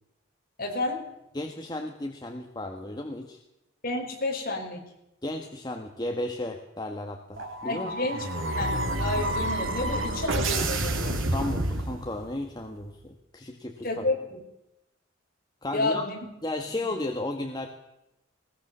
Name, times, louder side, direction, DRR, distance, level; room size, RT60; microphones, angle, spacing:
voice 1, 0.6-1.0 3.8-4.8 7.6-8.3 8.6-11.3 13.8-14.4 15.7-16.3 16.7-16.9, left 2 dB, 45° left, 1 dB, 5.5 m, -31 dB
voice 2, 1.3-3.4 5.2-7.9 11.1-14.0 15.6-16.1 16.4-17.7, left 1 dB, 20° left, 3 dB, 1.7 m, -34 dB
sound 1, 7.4-12.4, right 1 dB, 85° right, 3.1 m, -29 dB
20.5 x 19.5 x 7.1 m, 0.87 s
head